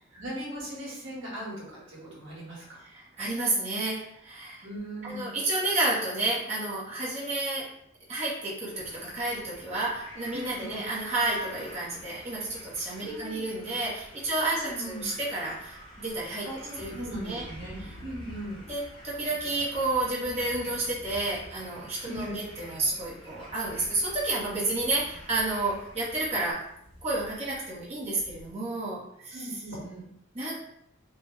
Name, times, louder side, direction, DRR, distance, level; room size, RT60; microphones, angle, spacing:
voice 1, 0.1-2.8 4.6-5.3 10.3-10.8 13.0-13.4 14.5-15.0 16.4-18.6 22.0-22.4 29.3-30.1, right 1 dB, 70° right, -7 dB, 1.5 m, -39 dB
voice 2, 2.8-4.7 5.0-7.7 8.1-16.5 16.8-16.9 17.2-17.4 17.8-18.0 18.7-26.6 27.0-29.6 30.3-30.6, right 2 dB, 30° right, -8 dB, 0.9 m, -31 dB
sound 1, 8.7-26.5, equal, 25° left, 0.7 m, -50 dB
Heavy-Thunder, 12.1-28.5, equal, 80° left, 0.7 m, -51 dB
3.5 x 2.2 x 3.1 m, 0.74 s
head